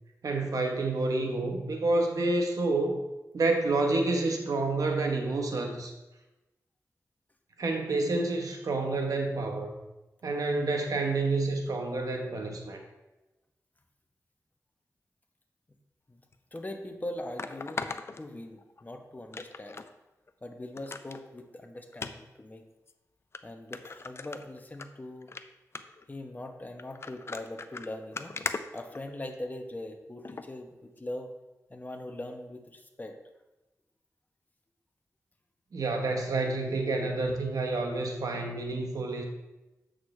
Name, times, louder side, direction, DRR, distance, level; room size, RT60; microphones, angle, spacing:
voice 1, 0.2-3.0 3.3-5.9 7.6-9.7 10.2-12.8 35.7-39.2, right 2 dB, 80° right, 3 dB, 1.0 m, -29 dB
sound 1, 16.3-16.4 17.4-18.8 19.3-19.9 20.3-20.4 20.8-21.2 21.9-22.1 22.9-23.0 23.3-23.4 23.7-24.9 25.2-25.4 25.7-26.0 26.8-29.5 30.2-30.5 31.0-31.1, left 4 dB, 45° left, 0.4 m, -38 dB
voice 2, 16.5-17.8 18.2-19.8 20.4-22.6 23.4-25.3 26.1-28.4 28.7-31.3 31.7-33.1, left 1 dB, 30° left, 4 dB, 0.9 m, -41 dB
7.9 x 6.5 x 3.2 m, 1.0 s
wide cardioid pair, 75°, 6 cm